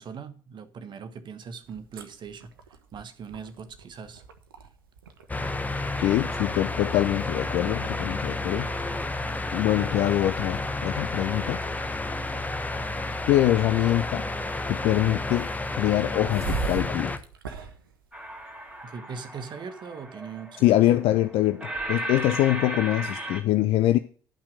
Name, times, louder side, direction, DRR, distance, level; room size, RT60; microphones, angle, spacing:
voice 1, 0.0-4.2 18.8-20.7, right 6 dB, 40° right, 1.4 m, -40 dB
sound 1, 1.6-18.8, right 5 dB, 75° right, 1.0 m, -42 dB
sound 2, 5.3-17.2, left 2 dB, 15° left, 1.1 m, -31 dB
voice 2, 6.0-8.7 9.5-11.6 13.3-14.2 14.7-15.5 15.8-17.1 20.6-24.0, left 14 dB, 55° left, 0.5 m, -24 dB
sound 3, 18.1-23.4, right 1 dB, 10° right, 2.5 m, -36 dB
11.5 x 5.9 x 6.4 m
figure-of-eight pair, 50°, 12 cm